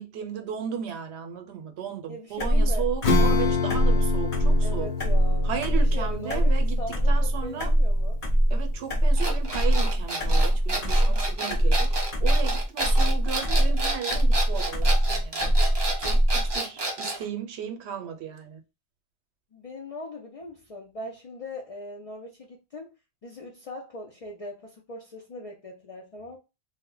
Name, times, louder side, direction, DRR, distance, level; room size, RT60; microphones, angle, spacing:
voice 1, 0.0-4.9 5.4-6.8 7.1-7.7 8.5-15.5 16.0-18.6, right 8 dB, 80° right, 0.9 m, -35 dB
voice 2, 2.1-2.9 4.6-8.2 19.5-23.0 23.2-26.4, left 2 dB, 55° left, 0.4 m, -40 dB
sound 1, 2.4-16.6, right 1 dB, 40° left, 0.9 m, -23 dB
Acoustic guitar / Strum, 3.0-9.0, left 5 dB, 70° left, 0.9 m, -29 dB
sound 2, 9.2-17.2, right 2 dB, 35° right, 0.4 m, -30 dB
2.1 x 2.1 x 3.6 m
omnidirectional pair, 1.1 m